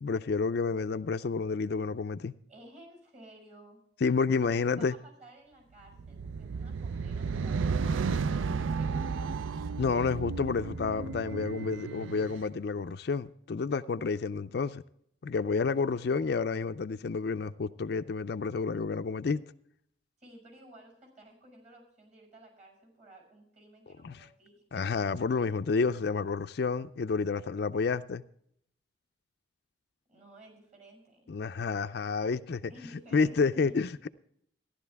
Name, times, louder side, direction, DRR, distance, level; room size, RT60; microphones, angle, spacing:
voice 1, 0.0-2.3 4.0-4.9 9.8-14.8 15.2-19.4 24.0-24.2 24.7-28.2 31.3-32.7 33.1-34.1, left 4 dB, 55° left, 0.4 m, -30 dB
voice 2, 2.5-3.9 4.4-9.3 15.9-16.2 20.2-24.9 30.1-31.3 32.7-33.8, right 1 dB, 35° right, 6.3 m, -54 dB
sound 1, 5.9-12.4, right 5 dB, 85° right, 0.4 m, -33 dB
14.5 x 11.5 x 3.4 m
head